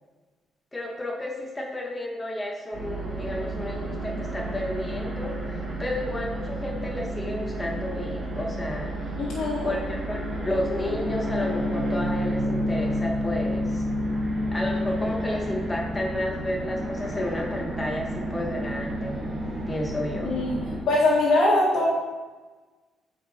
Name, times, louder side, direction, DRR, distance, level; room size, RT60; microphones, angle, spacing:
voice 1, 0.7-8.9 9.6-10.2 10.4-13.8 14.5-19.2 19.7-20.3, left 1 dB, 15° left, -1 dB, 1.1 m, -31 dB
sound 1, 2.7-20.8, equal, 55° right, 2.0 m, -30 dB
voice 2, 9.2-9.7 20.2-20.6 20.9-21.9, left 2 dB, 65° left, -7 dB, 1.7 m, -22 dB
8.4 x 4.9 x 2.8 m, 1.3 s
cardioid pair, 90°, 0 cm